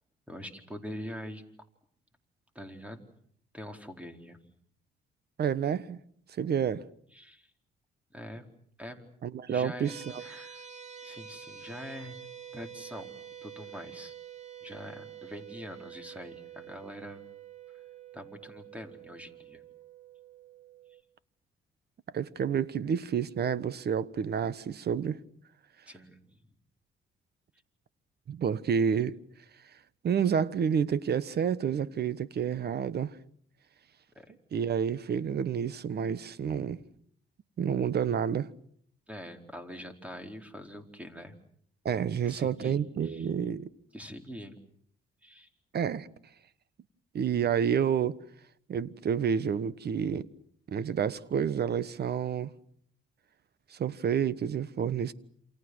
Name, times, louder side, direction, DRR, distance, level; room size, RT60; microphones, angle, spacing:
voice 1, 0.3-1.4 2.5-3.1 3.5-4.4 7.1-7.5 8.1-8.5 8.8-9.1 9.5-9.9 10.2-10.7 11.0-12.2 12.5-13.1 13.4-14.1 14.6-17.3 18.1-19.6 25.9-26.4 34.1-34.3 39.1-41.3 42.1-43.3 43.9-44.6 45.2-45.5, equal, 5° right, 4.5 m, -44 dB
voice 2, 5.4-6.0 6.4-6.8 9.2-10.2 22.1-25.2 28.3-29.2 30.0-33.2 34.5-36.8 37.6-38.5 41.8-43.7 45.7-46.1 47.1-48.2 48.7-50.3 50.7-52.5 53.7-55.1, right 7 dB, 55° right, 1.4 m, -29 dB
sound 1, 9.8-21.0, right 8 dB, 35° right, 2.5 m, -48 dB
28.5 x 28.0 x 6.4 m
cardioid pair, 90°, 20 cm